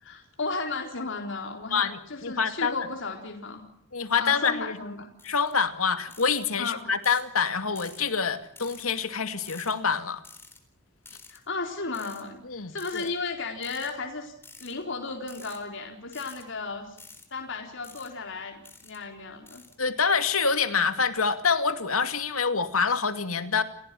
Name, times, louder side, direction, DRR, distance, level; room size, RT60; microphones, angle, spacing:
voice 1, 0.0-3.6 4.2-5.1 6.6-6.8 11.3-12.4 12.7-14.3 14.6-17.0 17.3-19.6, left 3 dB, 65° left, 2 dB, 4.1 m, -34 dB
voice 2, 1.7-2.9 3.9-4.9 5.2-10.2 12.4-13.1 19.8-23.6, left 5 dB, 85° left, 9 dB, 2.4 m, -26 dB
sound 1, 5.2-5.5 6.1-6.5 7.0-7.3 7.8-8.1 8.6-8.9 9.5-9.7 10.2-10.6 11.1-11.4 11.9-12.2 12.8-13.1 13.6-13.9 14.4-14.7 15.2-15.6 16.1-16.4 17.0-17.3 17.8-18.1 18.6-19.0 19.5-19.8 20.3-20.5, left 3 dB, 10° left, 4.2 m, -49 dB
30.0 x 17.5 x 7.7 m, 0.71 s
head